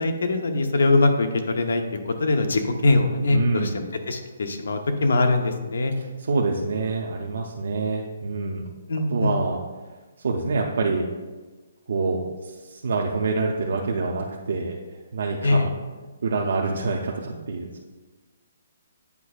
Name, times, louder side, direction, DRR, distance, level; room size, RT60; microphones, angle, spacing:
voice 1, 0.0-5.9 8.9-9.4 15.4-15.7, left 2 dB, 75° left, 6 dB, 0.7 m, -22 dB
voice 2, 3.3-3.8 6.0-8.7 9.1-9.6 10.2-11.1 11.9-14.7 15.1-15.7 16.2-17.7, right 3 dB, 55° right, -1 dB, 0.5 m, -26 dB
8.2 x 5.1 x 2.4 m, 1.3 s
hypercardioid pair, 180°, 0 cm